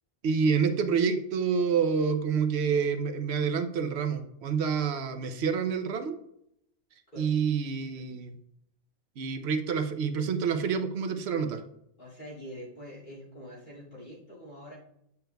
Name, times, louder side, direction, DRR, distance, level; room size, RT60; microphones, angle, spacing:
voice 1, 0.2-6.2 7.2-8.4 9.2-11.6, right 6 dB, 80° right, 8 dB, 0.9 m, -28 dB
voice 2, 12.0-14.8, equal, 50° left, -5 dB, 2.5 m, -45 dB
9.0 x 7.0 x 2.2 m, 0.79 s
omnidirectional pair, 1.1 m